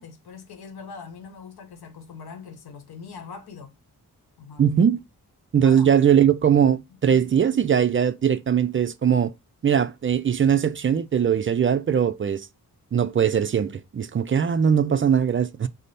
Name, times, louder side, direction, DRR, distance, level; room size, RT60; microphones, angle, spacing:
voice 1, 0.0-3.8 4.4-4.7 5.6-5.9, left 5 dB, 85° left, 0.9 m, -42 dB
voice 2, 4.6-5.0 5.5-9.3 9.6-12.5 12.9-15.7, right 8 dB, 35° right, 0.4 m, -20 dB
5.0 x 2.0 x 4.1 m
cardioid pair, 75°, 37 cm